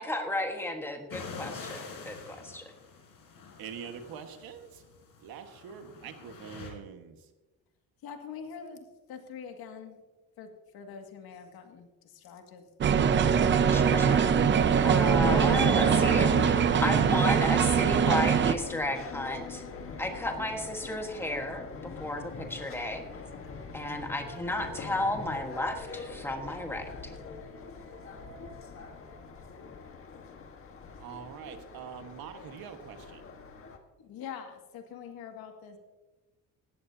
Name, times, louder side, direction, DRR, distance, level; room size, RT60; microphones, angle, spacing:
voice 1, 0.0-2.6 13.7-14.3 14.8-19.6 20.0-23.0 23.7-27.1, left 1 dB, 5° left, 3 dB, 1.4 m, -33 dB
sound 1, 1.1-6.7, left 5 dB, 65° left, 4.5 m, -46 dB
voice 2, 3.6-4.8 5.2-7.2 31.0-33.2, right 7 dB, 75° right, 6 dB, 1.6 m, -44 dB
voice 3, 8.0-10.0 10.4-10.5 10.7-11.9 12.1-12.6 34.0-35.8, left 7 dB, 80° left, 4 dB, 2.2 m, -44 dB
sound 2, 12.8-18.5, right 7 dB, 30° right, 0.6 m, -23 dB
sound 3, 15.3-33.8, left 4 dB, 35° left, 1.5 m, -41 dB
18.5 x 14.5 x 2.8 m, 1.1 s
cardioid pair, 170°, 36 cm